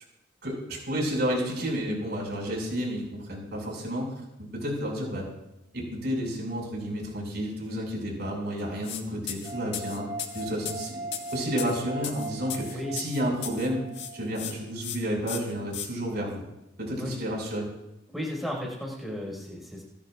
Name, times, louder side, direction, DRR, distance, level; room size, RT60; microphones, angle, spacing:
voice 1, 0.4-4.1 4.5-5.3 5.7-10.1 10.3-11.1 11.3-13.8 14.1-16.4 16.8-17.7, equal, 55° right, -1 dB, 6.0 m, -31 dB
sound 1, 8.8-9.0 9.3-13.7 13.9-14.5 14.8-15.0 15.3-15.9, left 9 dB, 60° left, 1.9 m, -36 dB
sound 2, 9.4-14.7, right 2 dB, 20° right, 6.2 m, -40 dB
voice 2, 18.1-19.8, left 1 dB, ahead, -2 dB, 5.3 m, -34 dB
28.5 x 12.0 x 2.5 m, 0.89 s
head